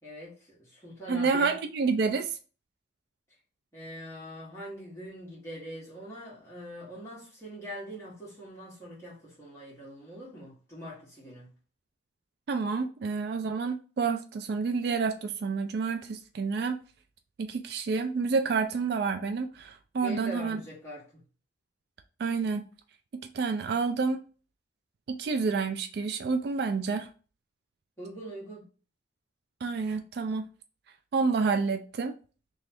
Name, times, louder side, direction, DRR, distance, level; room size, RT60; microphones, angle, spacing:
voice 1, 0.0-1.5 3.7-11.5 20.0-21.2 28.0-28.7, equal, 15° left, 1.5 m, -43 dB
voice 2, 1.1-2.4 12.5-16.8 17.4-20.6 22.2-22.6 23.3-24.2 25.1-27.1 29.6-30.4 31.1-32.1, right 4 dB, 55° right, 0.3 m, -29 dB
3.1 x 2.3 x 4.3 m
head